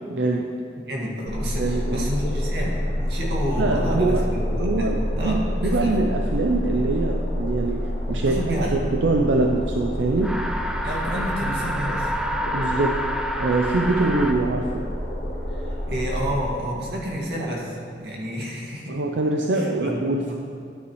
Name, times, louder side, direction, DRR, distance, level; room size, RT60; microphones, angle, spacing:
voice 1, 0.1-0.5 1.6-2.1 3.6-10.4 12.5-13.1 13.4-14.9 18.9-20.3, right 2 dB, 90° right, 2 dB, 0.5 m, -24 dB
voice 2, 0.9-5.4 5.6-5.9 8.3-8.7 10.8-12.1 15.5-19.0 19.5-20.0 20.3-20.4, equal, 70° right, -4 dB, 2.0 m, -30 dB
sound 1, 1.3-16.4, equal, 85° left, 1.9 m, -28 dB
sound 2, 10.2-14.3, equal, 5° right, 0.4 m, -28 dB
12.5 x 8.6 x 3.1 m, 2.4 s
head